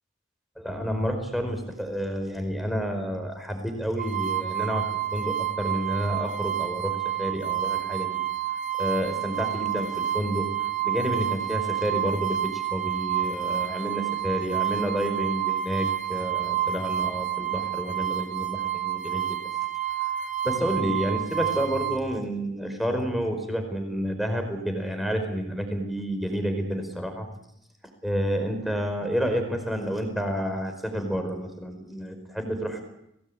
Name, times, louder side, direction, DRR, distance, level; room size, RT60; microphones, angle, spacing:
voice 1, 0.6-4.9 5.1-8.2 8.8-10.5 10.8-19.4 20.4-27.3 28.0-32.8, equal, ahead, 5 dB, 4.9 m, -29 dB
sound 1, 4.0-22.0, right 11 dB, 40° right, 2.5 m, -29 dB
27.0 x 18.5 x 8.8 m, 0.82 s
head